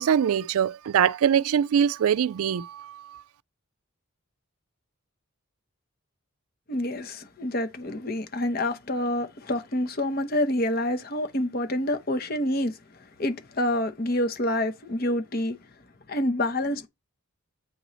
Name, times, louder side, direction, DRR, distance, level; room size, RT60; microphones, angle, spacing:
voice 1, 0.0-3.2, right 8 dB, 80° right, 0.3 m, -23 dB
voice 2, 6.7-12.8 13.2-15.6 16.1-16.9, left 1 dB, 45° left, 0.9 m, -27 dB
8.8 x 3.1 x 4.0 m
head